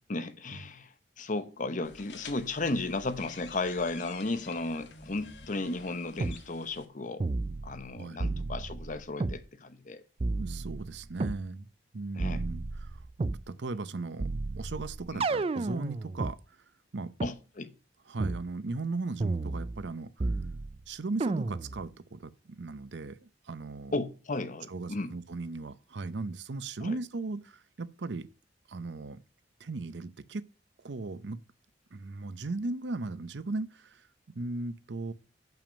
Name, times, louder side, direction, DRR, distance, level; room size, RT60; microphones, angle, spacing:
voice 1, 0.1-7.2 7.6-10.0 12.2-12.4 15.1-15.2 17.2-17.7 23.9-25.1 26.8-27.0, left 2 dB, 45° left, 0.9 m, -34 dB
sound 1, 1.8-6.8, left 4 dB, 85° left, 1.7 m, -49 dB
sound 2, 6.2-6.4 7.2-7.9 8.2-9.4 10.2-11.4 12.2-13.4 14.2-16.4 17.2-17.3 18.2-18.4 19.2-19.9 20.2-20.8 21.2-21.8, right 3 dB, 35° right, 0.4 m, -32 dB
voice 2, 7.9-8.4 10.4-11.7 11.9-14.3 14.6-16.6 16.9-17.1 18.1-20.3 20.9-24.0 24.7-28.3 28.7-29.2 29.6-30.5 30.8-31.4 31.9-34.1 34.4-35.1, right 3 dB, 80° right, 0.7 m, -37 dB
7.1 x 5.9 x 5.1 m
head